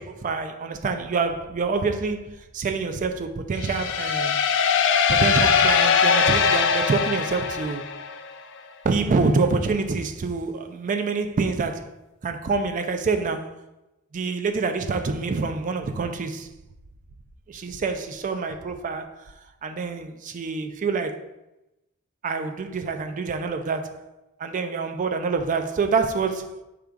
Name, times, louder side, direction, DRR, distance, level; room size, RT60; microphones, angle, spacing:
voice 1, 0.0-4.4 5.1-7.9 8.8-11.9 12.2-13.6 14.1-16.5 17.5-19.3 19.6-21.2 22.2-24.0 24.4-26.6, right 4 dB, 35° right, 0.3 m, -26 dB
sound 1, 3.6-8.3, left 6 dB, 55° left, 0.4 m, -21 dB
5.1 x 2.3 x 4.5 m
head